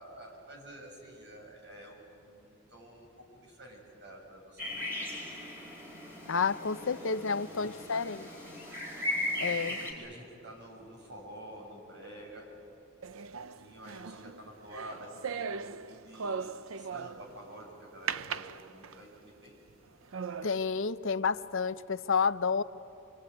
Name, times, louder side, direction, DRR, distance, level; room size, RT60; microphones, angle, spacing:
voice 1, 0.0-5.2 6.8-7.2 7.5-8.3 9.7-12.5 13.4-16.5 16.8-19.6, right 1 dB, 55° right, 0 dB, 6.8 m, -49 dB
sound 1, 4.6-9.9, left 1 dB, 10° right, 5.0 m, -37 dB
voice 2, 6.3-8.3 9.4-9.8 20.4-22.6, left 5 dB, 60° left, 12 dB, 0.7 m, -30 dB
sound 2, 13.0-17.4 18.1-19.2 19.7-19.8 20.1-20.6, right 6 dB, 75° right, 0.6 m, -39 dB
25.0 x 24.0 x 9.4 m, 2.8 s
head